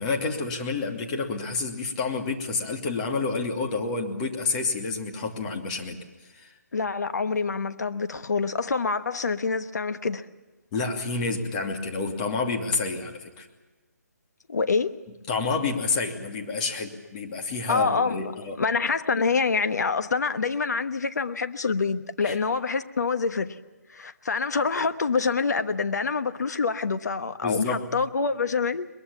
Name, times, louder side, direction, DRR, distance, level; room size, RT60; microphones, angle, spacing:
voice 1, 0.0-6.0 10.7-13.5 15.3-18.6 22.2-22.4 27.4-27.9, left 4 dB, 30° left, 2 dB, 2.7 m, -29 dB
voice 2, 6.7-10.2 14.5-15.0 17.7-18.3 18.6-23.5 23.9-28.9, left 4 dB, 75° left, 11 dB, 1.2 m, -26 dB
22.5 x 21.5 x 7.1 m, 1.2 s
hypercardioid pair, 155°, 9 cm